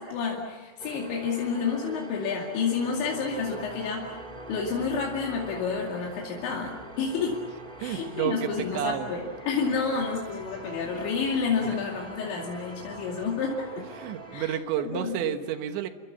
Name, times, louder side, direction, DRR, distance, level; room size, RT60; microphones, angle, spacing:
voice 1, 0.0-4.2 4.5-7.4 7.8-13.8 14.3-15.4, left 5 dB, 80° left, -1 dB, 4.8 m, -30 dB
sound 1, 0.8-14.5, right 1 dB, 20° right, 1.3 m, -43 dB
voice 2, 7.8-9.1 11.6-11.8 13.1-13.3 13.8-15.9, right 10 dB, 80° right, 8 dB, 3.6 m, -31 dB
29.5 x 23.5 x 7.1 m, 1.3 s
omnidirectional pair, 5.1 m